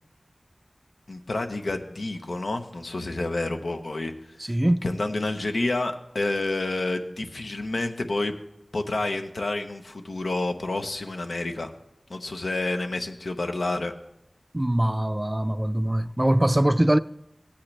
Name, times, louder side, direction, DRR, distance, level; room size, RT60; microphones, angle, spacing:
voice 1, 1.1-4.1 4.8-8.3 8.7-11.7 12.1-13.9, left 2 dB, 90° left, 0.9 m, -29 dB
voice 2, 4.4-4.8 14.5-17.0, right 1 dB, 25° right, 0.3 m, -22 dB
16.5 x 8.6 x 3.3 m
wide cardioid pair, 45°, 0 cm